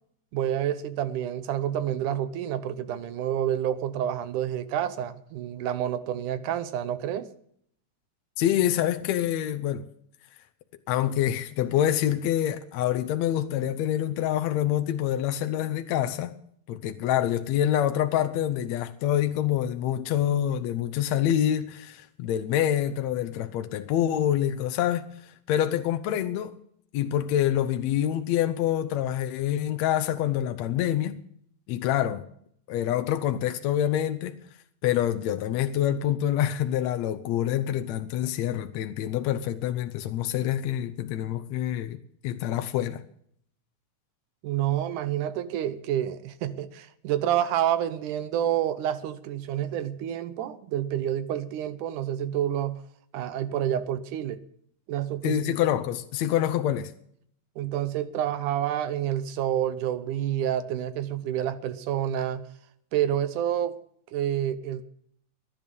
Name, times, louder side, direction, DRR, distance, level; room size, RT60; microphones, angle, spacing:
voice 1, 0.3-7.3 44.4-52.8 53.1-54.4 54.9-55.6 57.6-62.4 62.9-63.7 64.1-64.8, right 11 dB, 80° right, 2.4 m, -28 dB
voice 2, 8.4-9.9 10.9-16.4 16.7-26.5 26.9-31.2 31.7-32.3 32.7-34.4 34.8-42.0 42.2-43.0 55.2-56.9, left 11 dB, 70° left, 1.8 m, -26 dB
18.5 x 11.0 x 5.3 m
omnidirectional pair, 3.6 m